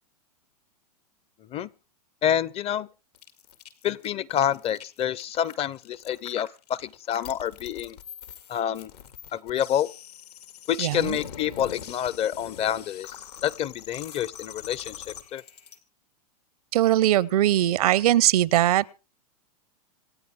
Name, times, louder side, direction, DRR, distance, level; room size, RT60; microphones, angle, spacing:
voice 1, 2.2-2.9 3.8-8.0 8.5-8.9 9.3-9.9 10.7-13.1 13.4-15.0 15.3-15.4, left 10 dB, 30° left, 0.6 m, -28 dB
sound 1, 3.1-15.8, left 9 dB, 80° left, 2.2 m, -43 dB
voice 2, 10.8-11.2 16.7-18.9, right 13 dB, 70° right, 0.7 m, -21 dB
26.0 x 9.2 x 3.7 m
hypercardioid pair, 110°, 20 cm